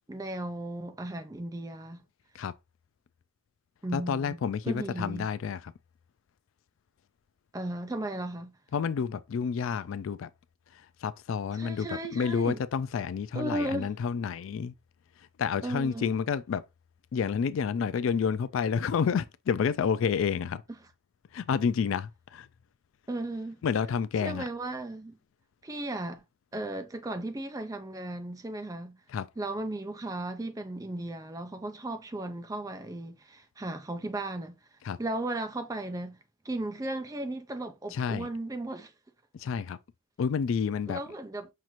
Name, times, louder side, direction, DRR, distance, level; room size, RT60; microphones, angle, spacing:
voice 1, 0.1-2.0 3.8-4.4 4.7-5.3 7.5-8.6 11.5-12.6 13.3-13.9 15.6-16.1 23.1-23.6 24.2-25.2 25.6-26.2 26.5-29.0 29.4-34.6 35.0-36.2 36.4-38.9 40.9-41.5, right 1 dB, 15° right, 0.4 m, -35 dB
voice 2, 3.9-5.7 8.7-10.3 10.7-14.7 15.4-16.6 17.1-20.6 21.3-22.5 23.6-24.4 29.1-29.3 34.8-35.0 37.9-38.3 39.3-39.8 40.2-41.0, left 6 dB, 70° left, 0.3 m, -29 dB
5.6 x 2.5 x 3.0 m
head